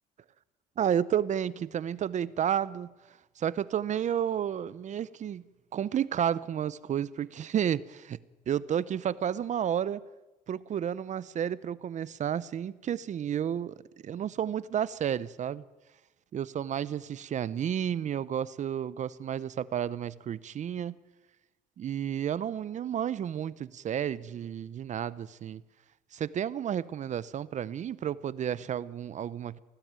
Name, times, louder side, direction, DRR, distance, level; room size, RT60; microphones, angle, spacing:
voice 1, 0.8-2.9 3.4-5.4 5.7-8.2 8.5-10.0 10.5-13.8 14.0-15.6 16.3-21.0 21.8-25.6 26.1-29.6, right 9 dB, 45° right, 0.7 m, -31 dB
19.0 x 15.5 x 8.9 m
cardioid pair, 110°, 17 cm